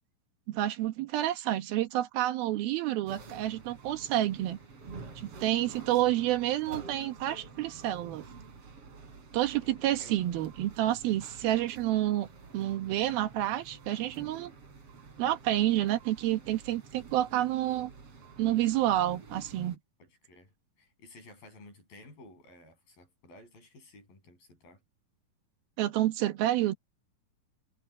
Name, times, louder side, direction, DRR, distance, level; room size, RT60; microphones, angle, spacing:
voice 1, 0.5-4.6 5.2-8.3 9.3-12.3 12.5-14.5 15.2-17.9 18.4-19.8 25.8-26.7, right 13 dB, 85° right, 3.2 m, -29 dB
sound 1, 3.1-19.8, right 4 dB, 45° right, 4.0 m, -49 dB
voice 2, 9.6-10.2 20.0-20.5 20.8-24.8, left 2 dB, 75° left, 9.9 m, -54 dB
omnidirectional pair, 4.2 m